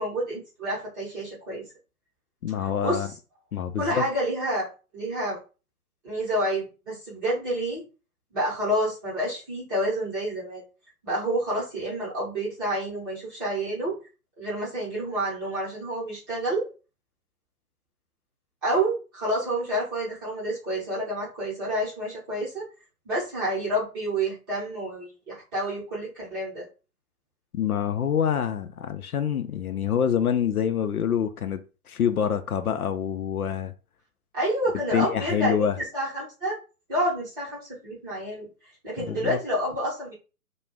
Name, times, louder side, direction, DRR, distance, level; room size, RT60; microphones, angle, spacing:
voice 1, 0.0-1.6 2.8-3.1 3.8-5.4 6.0-7.8 8.3-10.6 11.0-14.0 14.4-16.7 18.6-22.7 23.0-26.7 34.3-35.7 35.9-36.6 36.9-38.5 38.8-40.1, right 1 dB, 15° right, 0.7 m, -29 dB
voice 2, 2.4-3.1 3.5-4.0 27.5-31.6 31.9-33.7 34.9-35.8 39.0-39.4, left 8 dB, 70° left, 0.5 m, -26 dB
2.3 x 2.1 x 3.3 m
figure-of-eight pair, 135°, 46 cm